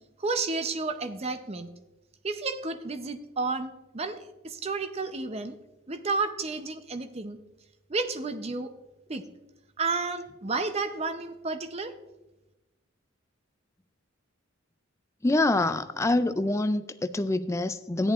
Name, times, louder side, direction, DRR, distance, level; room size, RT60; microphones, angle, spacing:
voice 1, 0.2-1.7 2.2-4.2 4.4-5.5 5.9-7.4 7.9-8.7 9.1-9.2 9.8-11.9, right 3 dB, 30° right, 0.6 m, -31 dB
voice 2, 15.2-18.1, left 2 dB, 15° left, 0.3 m, -25 dB
14.0 x 10.5 x 2.4 m
head